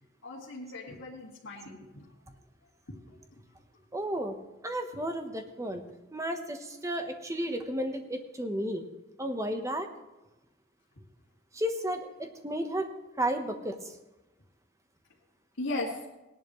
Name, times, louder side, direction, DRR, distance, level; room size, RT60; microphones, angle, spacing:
voice 1, 0.2-2.0 15.6-15.9, left 2 dB, 80° left, -7 dB, 2.2 m, -37 dB
voice 2, 3.9-4.3 4.6-5.8 6.1-8.8 9.2-9.9 11.5-12.9 13.2-13.9, right 1 dB, 15° right, 6 dB, 1.0 m, -33 dB
18.5 x 11.0 x 3.1 m, 1.0 s
head